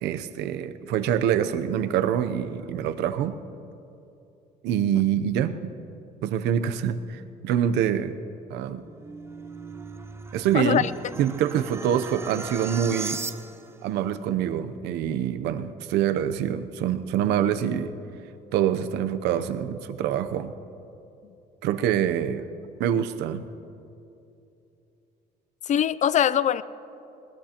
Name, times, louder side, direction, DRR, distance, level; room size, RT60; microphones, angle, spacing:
voice 1, 0.0-3.4 4.6-5.7 6.2-8.1 8.5-8.8 10.3-10.9 11.2-13.2 13.8-17.9 18.5-20.5 21.6-22.4 22.8-23.4, right 9 dB, 85° right, 10 dB, 0.7 m, -25 dB
sound 1, 8.8-13.8, right 3 dB, 15° right, 0.7 m, -38 dB
voice 2, 10.5-10.9 25.6-26.6, left 10 dB, 45° left, 17 dB, 0.4 m, -22 dB
21.0 x 19.0 x 2.9 m, 2.8 s
cardioid pair, 110°, 17 cm